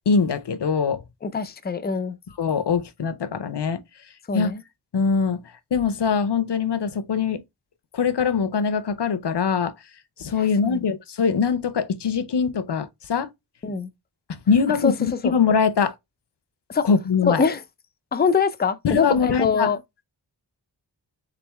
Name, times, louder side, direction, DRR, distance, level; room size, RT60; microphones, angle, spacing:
voice 1, 0.1-1.0 2.4-3.8 4.3-4.5 4.9-5.4 5.7-7.4 7.9-9.7 10.2-13.3 14.3-15.9 16.8-17.4 18.8-19.7, left 6 dB, 60° left, 0.6 m, -22 dB
voice 2, 1.2-2.2 4.3-4.6 10.6-10.8 13.6-13.9 14.8-15.3 16.7-16.9 17.2-17.6 18.1-19.8, left 5 dB, 20° left, 0.4 m, -23 dB
3.8 x 3.5 x 3.0 m
wide cardioid pair, 70°, 46 cm